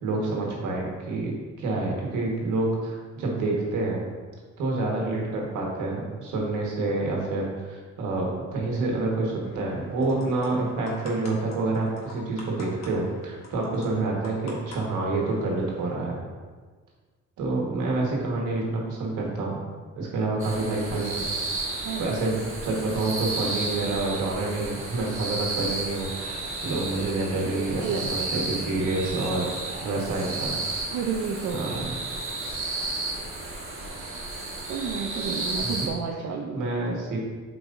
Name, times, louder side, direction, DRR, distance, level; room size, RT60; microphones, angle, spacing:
voice 1, 0.0-4.0 4.6-16.3 17.4-19.7 19.9-21.2 21.7-29.5 29.8-30.6 31.5-32.0 35.6-35.9 36.5-37.2, right 2 dB, 85° right, -2 dB, 1.5 m, -28 dB
sound 1, 9.4-15.9, left 2 dB, 60° left, 1.7 m, -46 dB
sound 2, 20.4-35.9, right 2 dB, 45° right, 1.5 m, -33 dB
sound 3, 26.1-31.8, right 1 dB, 25° right, 1.6 m, -49 dB
voice 2, 27.4-28.3 30.9-31.7 34.7-36.7, right 6 dB, 65° right, 0 dB, 0.6 m, -31 dB
8.2 x 4.6 x 2.6 m, 1.5 s
cardioid pair, 90°, 30 cm